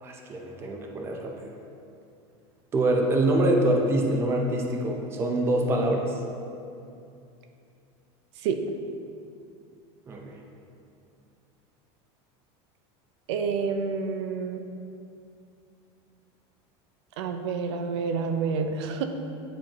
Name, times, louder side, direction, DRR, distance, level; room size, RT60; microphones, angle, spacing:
voice 1, 0.0-1.5 2.7-6.1 10.1-10.4, right 1 dB, 15° right, 1 dB, 0.5 m, -25 dB
voice 2, 13.3-14.6 17.2-19.0, right 5 dB, 80° right, 6 dB, 0.6 m, -28 dB
10.0 x 4.4 x 2.9 m, 2.6 s
cardioid pair, 170°, 14 cm